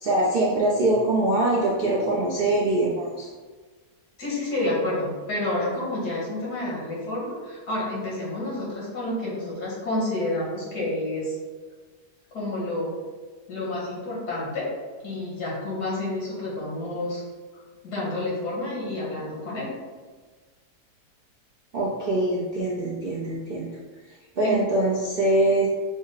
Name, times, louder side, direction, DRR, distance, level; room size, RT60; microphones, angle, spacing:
voice 1, 0.0-3.3 21.7-23.7 24.4-25.7, right 1 dB, 55° right, -6 dB, 0.6 m, -23 dB
voice 2, 4.2-11.4 12.3-12.9 13.5-14.7 15.0-17.2 17.8-19.7 24.4-24.6, left 1 dB, 75° left, -6 dB, 2.1 m, -29 dB
6.1 x 2.1 x 3.9 m, 1.4 s
omnidirectional pair, 1.7 m